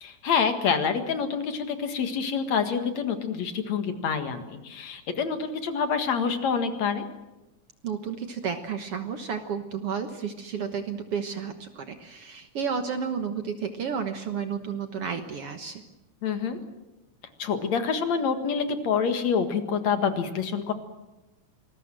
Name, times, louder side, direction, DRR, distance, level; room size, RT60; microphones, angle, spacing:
voice 1, 0.0-7.0 16.2-16.6 17.4-20.7, left 6 dB, 60° left, 8 dB, 2.8 m, -27 dB
voice 2, 7.8-15.8, right 6 dB, 55° right, 7 dB, 1.9 m, -32 dB
27.0 x 20.5 x 7.7 m, 1.0 s
omnidirectional pair, 3.7 m